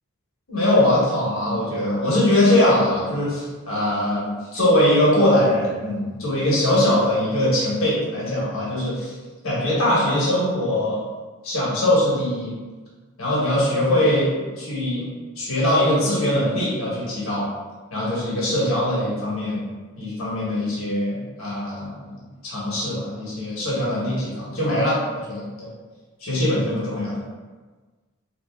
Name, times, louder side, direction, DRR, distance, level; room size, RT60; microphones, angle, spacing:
voice 1, 0.5-9.1 9.4-11.0 11.4-12.5 13.2-15.1 15.4-17.5 17.9-19.6 20.0-22.1 22.4-25.7 26.2-27.2, left 1 dB, 75° left, -7 dB, 1.2 m, -21 dB
3.0 x 2.7 x 3.5 m, 1.3 s
head